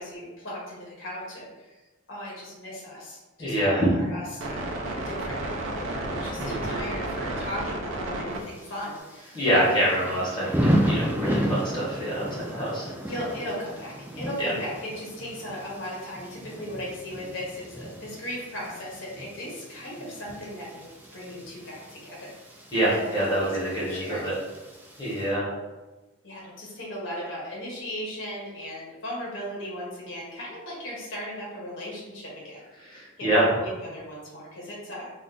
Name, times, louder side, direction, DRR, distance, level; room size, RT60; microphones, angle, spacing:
voice 1, 0.0-1.8 2.1-9.7 13.0-20.8 21.1-22.3 22.9-23.5 23.8-24.3 26.2-32.6 33.2-35.1, equal, 65° left, -5 dB, 0.9 m, -37 dB
voice 2, 3.4-3.9 6.3-6.8 9.3-12.9 14.4-14.5 22.7-24.3 25.0-25.5 32.8-33.5, right 1 dB, 20° left, -7 dB, 1.0 m, -26 dB
sound 1, 4.4-8.4, right 2 dB, 65° right, 0.5 m, -32 dB
Thunder / Rain, 8.4-25.2, equal, 10° right, 0.3 m, -33 dB
2.4 x 2.4 x 3.7 m, 1.2 s
head